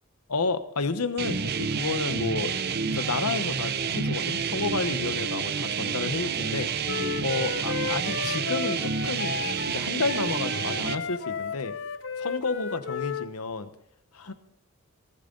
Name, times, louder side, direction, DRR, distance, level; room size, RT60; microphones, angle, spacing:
voice 1, 0.3-6.7 7.2-9.3 9.7-11.7 12.2-13.7 14.1-14.3, left 3 dB, 90° left, 11 dB, 1.1 m, -31 dB
sound 1, 1.2-11.0, right 6 dB, 45° right, 0.6 m, -29 dB
Wind instrument woodwind instrument, 6.8-13.3, left 6 dB, 55° left, 0.7 m, -34 dB
18.5 x 11.5 x 3.9 m, 0.76 s
head